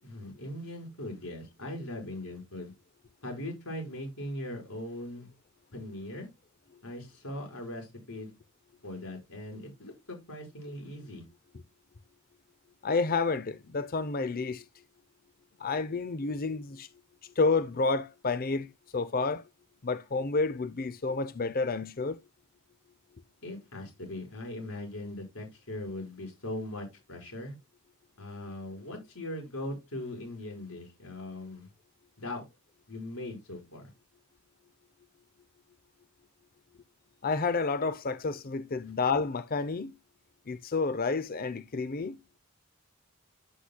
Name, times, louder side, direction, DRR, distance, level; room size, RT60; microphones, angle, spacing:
voice 1, 0.0-2.7 3.2-5.3 5.7-6.3 6.8-8.3 8.8-11.3 23.4-27.5 28.2-31.7 32.2-32.4 32.9-33.9, left 1 dB, 80° left, 5.0 m, -40 dB
voice 2, 12.8-14.6 15.6-16.9 17.4-18.7 18.9-19.4 19.8-22.2 37.2-39.9 40.5-42.2, left 4 dB, 40° left, 0.6 m, -30 dB
9.9 x 8.1 x 2.2 m
head